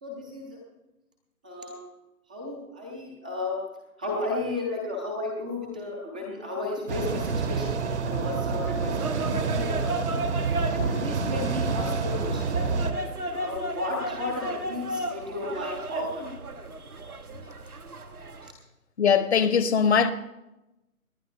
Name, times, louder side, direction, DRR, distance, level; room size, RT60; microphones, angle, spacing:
voice 1, 0.0-0.6 1.4-1.8 2.3-3.6 4.0-9.9 10.7-12.7 13.3-16.3, left 2 dB, 5° right, 0.5 m, -34 dB
sound 1, 6.9-12.9, right 5 dB, 50° right, 1.3 m, -28 dB
sound 2, 8.8-18.5, right 1 dB, 80° right, 1.5 m, -35 dB
voice 2, 19.0-20.1, left 6 dB, 50° left, 1.1 m, -21 dB
18.5 x 10.5 x 3.3 m
figure-of-eight pair, 140°, 44 cm